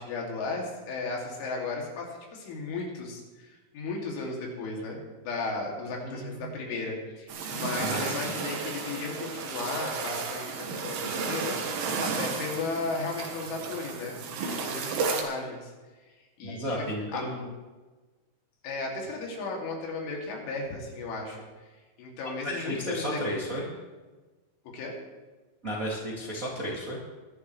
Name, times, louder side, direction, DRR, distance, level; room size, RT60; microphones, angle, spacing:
voice 1, 0.0-2.1 2.3-11.5 12.0-15.7 16.4-16.9 17.1-17.2 18.6-21.4 22.0-23.2 24.7-24.9, left 3 dB, 85° left, -1 dB, 5.0 m, -35 dB
voice 2, 6.0-6.5 7.8-8.2 16.4-17.5 22.4-23.7 25.6-27.0, equal, 35° right, -5 dB, 1.4 m, -33 dB
sound 1, 7.3-15.2, right 5 dB, 75° right, 3.8 m, -33 dB
22.0 x 11.5 x 3.2 m, 1.3 s
omnidirectional pair, 5.4 m